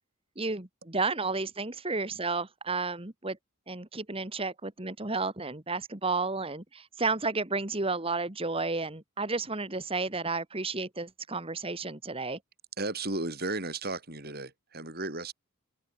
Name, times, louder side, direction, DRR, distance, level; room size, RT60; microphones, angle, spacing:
voice 1, 0.4-3.4 3.7-12.4, right 3 dB, 25° right, 1.7 m, -32 dB
voice 2, 12.8-15.3, right 2 dB, 45° right, 7.8 m, -34 dB
head